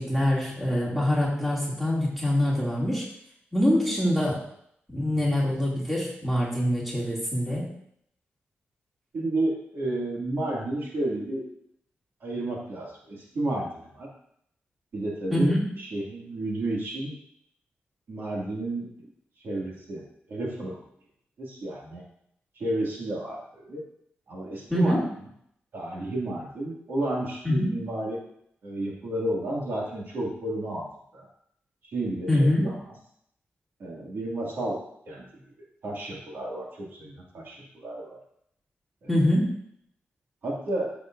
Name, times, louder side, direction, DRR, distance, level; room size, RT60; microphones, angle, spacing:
voice 1, 0.0-3.0 3.5-4.4 4.9-7.6 15.3-15.6 24.7-25.0 27.4-27.7 32.3-32.7 39.1-39.5, left 1 dB, 5° right, -6 dB, 2.6 m, -24 dB
voice 2, 9.1-11.4 12.2-13.7 14.0-14.1 14.9-17.1 18.1-19.1 19.4-20.0 20.3-20.8 21.4-22.0 22.6-23.8 24.3-25.0 25.7-28.2 28.6-30.9 31.1-31.3 31.9-32.8 33.8-34.8 35.1-35.2 35.8-38.2 39.0-39.1 40.4-40.9, right 1 dB, 60° right, -4 dB, 2.3 m, -31 dB
13.5 x 6.9 x 2.6 m, 0.70 s
wide cardioid pair, 175°, 4 cm